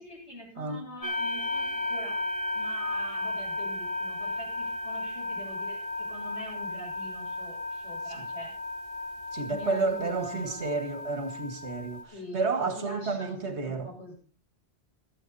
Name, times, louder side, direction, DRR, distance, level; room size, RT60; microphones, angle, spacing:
voice 1, 0.0-8.5 9.5-10.6 12.1-14.1, equal, 90° left, 8.5 m, -44 dB
sound 1, 1.0-12.0, left 2 dB, 30° left, 2.9 m, -34 dB
voice 2, 9.3-13.9, right 4 dB, 85° right, 2.1 m, -31 dB
16.5 x 13.5 x 4.1 m
omnidirectional pair, 1.1 m